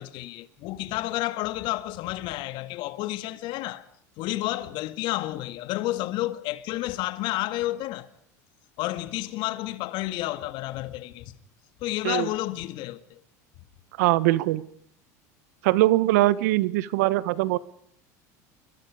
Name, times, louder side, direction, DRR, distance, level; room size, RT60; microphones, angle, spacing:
voice 1, 0.0-3.8 4.2-8.1 8.8-11.3 11.8-13.2, left 16 dB, 60° left, 1.9 m, -31 dB
voice 2, 14.0-14.6 15.6-17.6, right 17 dB, 75° right, 1.3 m, -22 dB
29.0 x 23.0 x 5.0 m
supercardioid pair, 100°, 9 cm